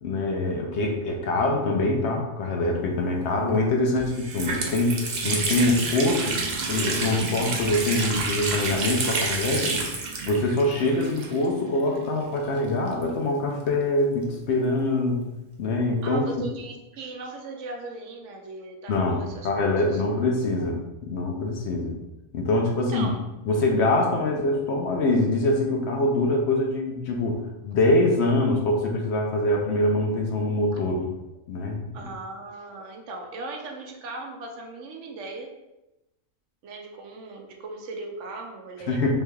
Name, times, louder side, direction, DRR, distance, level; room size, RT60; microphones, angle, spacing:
voice 1, 0.0-6.4 6.7-9.9 10.3-15.2 15.6-16.5 18.9-19.2 19.4-22.0 22.3-23.1 23.5-31.1 31.5-31.9 38.9-39.2, left 2 dB, 70° left, 1 dB, 0.8 m, -24 dB
Water tap faucet, 3.5-3.6 4.0-11.7 11.9-12.0 12.9-14.4, right 3 dB, 55° right, 0.5 m, -29 dB
voice 2, 16.0-20.0 22.8-23.2 31.9-35.5 36.6-39.0, right 3 dB, 75° right, 2 dB, 0.9 m, -38 dB
3.4 x 3.0 x 2.3 m, 0.97 s
omnidirectional pair, 1.3 m